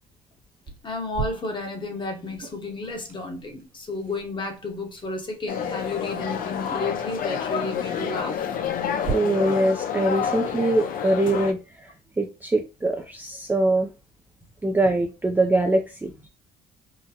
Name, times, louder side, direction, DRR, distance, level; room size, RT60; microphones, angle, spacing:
sound 1, 0.7-9.1, right 5 dB, 60° right, 1.2 m, -41 dB
voice 1, 0.8-8.6, left 2 dB, 30° left, 0.9 m, -32 dB
sound 2, 5.5-11.5, left 8 dB, 55° left, 0.5 m, -29 dB
voice 2, 9.1-11.6 12.2-13.9 14.6-16.3, right 2 dB, 10° right, 0.4 m, -23 dB
3.8 x 2.0 x 2.8 m
cardioid pair, 110°, 17 cm